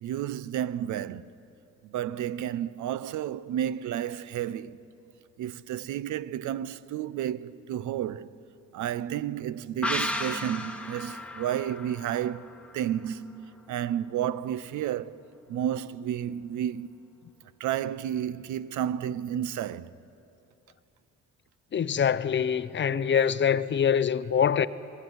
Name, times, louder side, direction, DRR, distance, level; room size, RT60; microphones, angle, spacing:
voice 1, 0.0-1.3 1.8-4.8 5.4-8.3 8.7-12.5 12.7-15.2 15.5-16.9 17.6-19.9, right 10 dB, 75° right, 0.6 m, -31 dB
sound 1, 9.8-13.3 13.6-13.7, left 1 dB, 5° left, 1.2 m, -34 dB
voice 2, 21.7-24.7, left 8 dB, 40° left, 0.6 m, -24 dB
20.5 x 15.5 x 9.3 m
cardioid pair, 90°, 30 cm